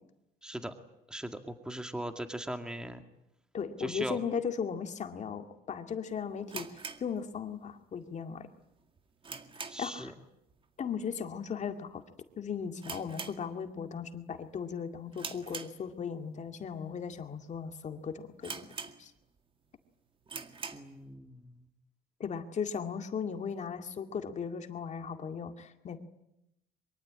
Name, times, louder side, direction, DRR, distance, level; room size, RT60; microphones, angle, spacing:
voice 1, 0.4-0.7 1.1-3.0 3.8-4.2 9.7-10.1 20.7-21.6, right 1 dB, 5° right, 7 dB, 2.1 m, -39 dB
voice 2, 3.5-8.5 9.8-10.1 10.8-12.0 12.4-18.5 19.0-19.1 22.2-26.0, left 6 dB, 45° left, 6 dB, 2.2 m, -37 dB
sound 1, 6.5-7.8 8.1-8.2 8.7-10.1 10.4-10.7 10.9-11.0 11.7-12.0 12.3-12.4 12.8-14.0 14.3-14.6 15.1-16.3 16.8-16.9 17.5-17.6 17.9-18.0 18.4-19.4 19.8-19.9 20.2-21.0, right 5 dB, 30° right, 2.0 m, -43 dB
24.0 x 23.5 x 8.7 m, 0.86 s
cardioid pair, 110°, 17 cm